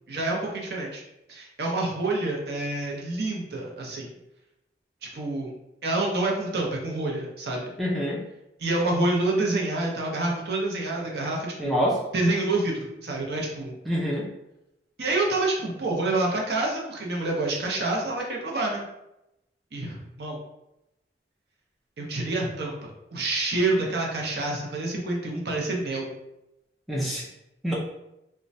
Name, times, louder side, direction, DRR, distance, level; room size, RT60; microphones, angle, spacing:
voice 1, 0.1-1.0 1.3-4.1 5.1-5.5 5.8-7.7 8.6-11.7 12.1-13.7 15.0-18.8 19.7-20.4 22.0-26.1, right 2 dB, 60° right, -1 dB, 0.6 m, -27 dB
voice 2, 7.8-8.2 11.6-12.0 13.9-14.3 26.9-27.3 27.6-27.7, equal, ahead, -6 dB, 0.4 m, -26 dB
3.0 x 2.2 x 2.6 m, 0.88 s
head